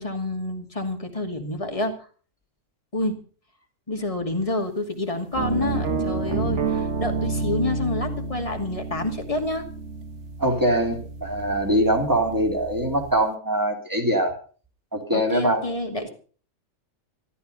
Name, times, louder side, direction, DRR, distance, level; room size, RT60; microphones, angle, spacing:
voice 1, 0.0-1.9 2.9-3.2 3.9-9.6 15.1-16.1, left 2 dB, 25° left, 3 dB, 2.6 m, -28 dB
sound 1, 5.3-13.2, right 4 dB, 65° right, 1.5 m, -30 dB
voice 2, 10.4-14.3 14.9-15.6, right 1 dB, 15° right, 2 dB, 3.3 m, -23 dB
13.5 x 13.5 x 5.6 m, 0.41 s
omnidirectional pair, 1.4 m